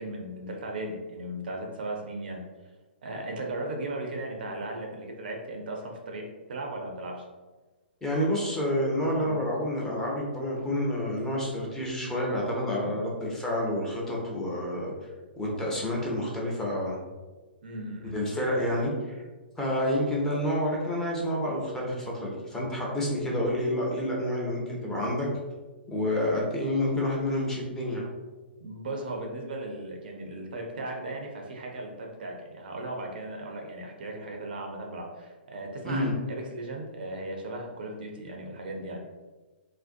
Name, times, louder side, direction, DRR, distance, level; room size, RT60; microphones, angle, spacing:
voice 1, 0.0-2.4 3.0-7.3 9.2-9.4 12.7-13.0 17.6-18.2 28.6-39.0, right 1 dB, 55° right, 1 dB, 0.4 m, -37 dB
voice 2, 8.0-14.9 15.4-17.0 18.1-19.2 19.6-25.3 25.9-28.1 35.9-36.1, left 1 dB, 10° left, -4 dB, 0.5 m, -29 dB
2.5 x 2.1 x 2.4 m, 1.2 s
figure-of-eight pair, 115°, 6 cm